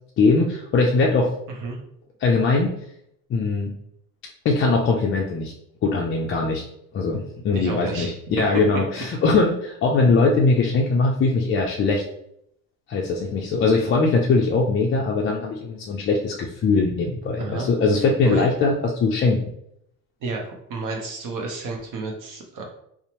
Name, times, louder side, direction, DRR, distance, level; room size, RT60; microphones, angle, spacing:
voice 1, 0.2-1.3 2.2-2.7 3.3-3.7 4.4-5.5 5.8-6.6 6.9-12.0 12.9-19.4, left 3 dB, 30° left, -1 dB, 0.4 m, -21 dB
voice 2, 7.5-8.1 17.4-17.7 18.2-18.5 20.2-22.6, right 3 dB, 50° right, 1 dB, 0.6 m, -31 dB
2.7 x 2.0 x 2.9 m, 0.74 s
supercardioid pair, 85°, 41 cm